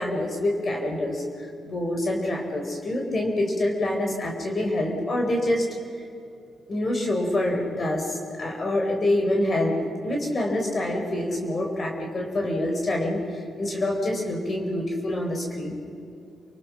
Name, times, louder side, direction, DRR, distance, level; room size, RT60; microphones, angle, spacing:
voice 1, 0.0-5.7 5.9-6.0 6.7-9.7 10.0-15.8, left 1 dB, 45° left, 1 dB, 4.3 m, -26 dB
29.0 x 19.0 x 6.3 m, 2.6 s
cardioid pair, 80°, 0 cm